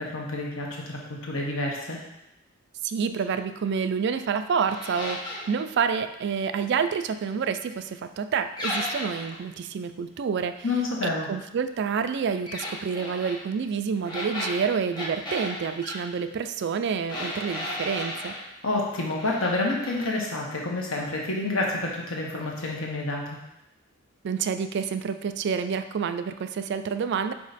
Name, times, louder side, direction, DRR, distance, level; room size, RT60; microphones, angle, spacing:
voice 1, 0.0-2.0 10.6-11.3 18.6-23.3, left 2 dB, 75° left, -1 dB, 1.3 m, -28 dB
voice 2, 2.8-10.6 11.3-18.4 24.2-27.3, right 6 dB, 55° right, 10 dB, 0.3 m, -28 dB
sound 1, 4.7-5.5 8.6-9.4 12.5-13.4 14.0-16.0 17.1-18.4 18.9-19.5 19.8-20.1, left 1 dB, 20° left, 1.2 m, -34 dB
5.1 x 4.7 x 4.1 m, 0.88 s
head